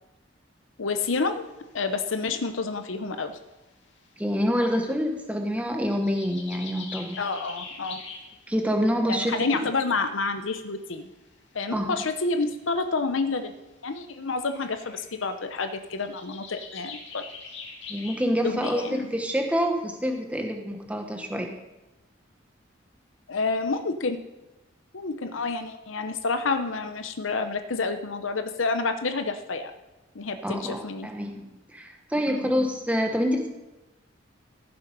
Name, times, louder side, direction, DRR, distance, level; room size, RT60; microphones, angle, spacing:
voice 1, 0.8-1.4 1.7-3.4 7.2-8.0 9.1-11.1 11.5-13.5 13.8-17.2 18.4-19.1 23.3-24.2 24.9-29.7 30.1-31.1 32.3-32.5, left 4 dB, 85° left, 8 dB, 0.8 m, -29 dB
sound 1, 1.4-1.9 2.3-2.4 2.7-4.3 4.6-5.4 5.7-9.0 11.0-12.8 13.7-13.8 13.9-14.0 14.3-19.1, left 5 dB, 65° left, 2.0 m, -44 dB
voice 2, 4.2-7.3 8.5-9.4 11.7-12.0 17.9-21.6 30.4-33.5, equal, 5° right, 3 dB, 1.3 m, -27 dB
15.0 x 7.0 x 5.4 m, 1.0 s
head